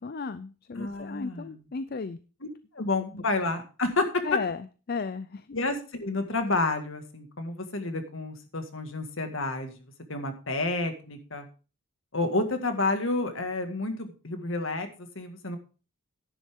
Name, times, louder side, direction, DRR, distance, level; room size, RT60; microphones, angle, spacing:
voice 1, 0.0-2.2 4.2-5.6, left 4 dB, 45° left, 14 dB, 0.4 m, -34 dB
voice 2, 0.8-1.6 2.7-4.2 5.5-9.7 10.1-11.5 12.1-15.6, left 2 dB, 60° left, 7 dB, 1.9 m, -30 dB
11.0 x 10.5 x 3.6 m, 0.35 s
head